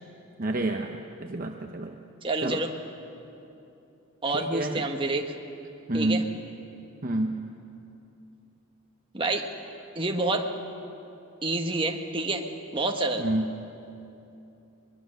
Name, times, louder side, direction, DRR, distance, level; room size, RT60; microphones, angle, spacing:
voice 1, 0.4-0.9 1.2-2.0 2.4-2.6 4.3-4.8 5.9-6.3 7.0-7.4 13.2-13.5, right 2 dB, 40° right, 3 dB, 0.8 m, -28 dB
voice 2, 2.2-2.7 4.2-5.2 5.9-6.2 9.1-9.5 9.9-10.5 11.4-12.5 12.7-13.2, right 2 dB, 20° right, 3 dB, 1.3 m, -28 dB
22.5 x 22.0 x 6.5 m, 2.8 s
head